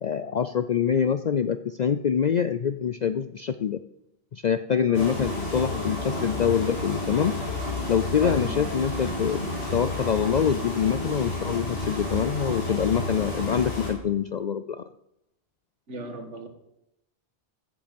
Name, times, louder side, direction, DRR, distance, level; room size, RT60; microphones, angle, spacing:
voice 1, 0.0-3.8 4.3-7.4 7.9-9.4 9.7-14.9, left 8 dB, 60° left, 11 dB, 0.4 m, -25 dB
sound 1, 4.9-13.9, left 2 dB, 80° left, 4.8 m, -31 dB
voice 2, 4.9-5.4 8.2-8.7 15.9-16.5, right 1 dB, 75° right, 6 dB, 1.9 m, -37 dB
15.5 x 8.1 x 5.3 m, 0.84 s
omnidirectional pair, 1.2 m